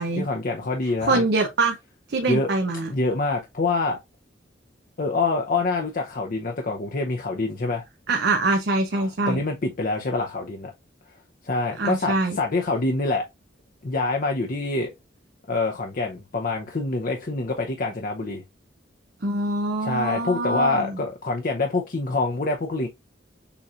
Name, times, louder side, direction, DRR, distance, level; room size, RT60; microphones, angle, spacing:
voice 1, 0.2-1.2 2.3-2.5 2.9-4.0 5.0-7.8 9.0-10.7 11.4-13.3 13.8-14.9 15.5-18.4 19.8-22.9, left 3 dB, 50° left, 0.7 m, -26 dB
voice 2, 1.0-1.8 2.1-2.9 8.1-9.4 11.8-12.4 19.2-21.0, right 2 dB, 65° right, 0.7 m, -24 dB
6.9 x 3.1 x 2.5 m
head